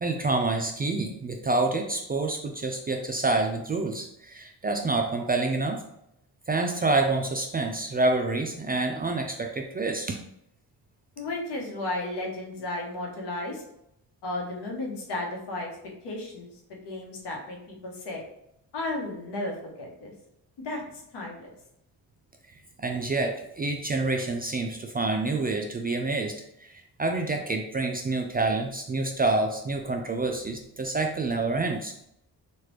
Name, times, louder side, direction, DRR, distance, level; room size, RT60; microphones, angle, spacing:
voice 1, 0.0-5.8 6.5-10.2 22.8-31.9, right 2 dB, 25° right, 3 dB, 0.3 m, -27 dB
voice 2, 11.2-13.6 14.2-15.7 16.0-18.2 18.7-20.1 20.6-20.8 21.1-21.5, left 2 dB, 70° left, 0 dB, 1.1 m, -34 dB
3.1 x 2.5 x 3.1 m, 0.77 s
cardioid pair, 65°, 42 cm